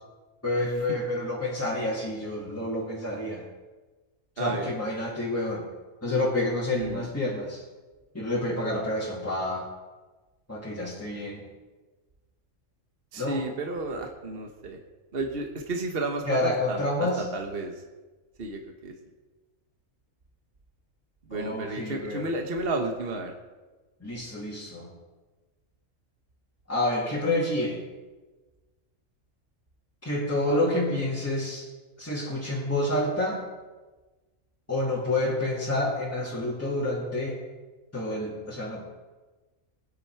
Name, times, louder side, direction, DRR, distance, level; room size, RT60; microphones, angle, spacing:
voice 1, 0.4-3.4 4.4-5.6 6.0-7.6 8.1-9.7 10.5-11.4 13.2-13.4 16.3-17.2 21.3-22.3 24.0-24.9 26.7-27.8 30.0-31.7 32.0-33.4 34.7-37.4 37.9-38.8, left 1 dB, 10° left, -7 dB, 2.6 m, -28 dB
voice 2, 4.4-4.7 6.7-7.1 13.1-14.8 15.1-17.8 18.4-18.9 21.3-23.3, right 2 dB, 50° right, 4 dB, 1.5 m, -32 dB
20.5 x 9.5 x 4.7 m, 1.3 s
omnidirectional pair, 1.3 m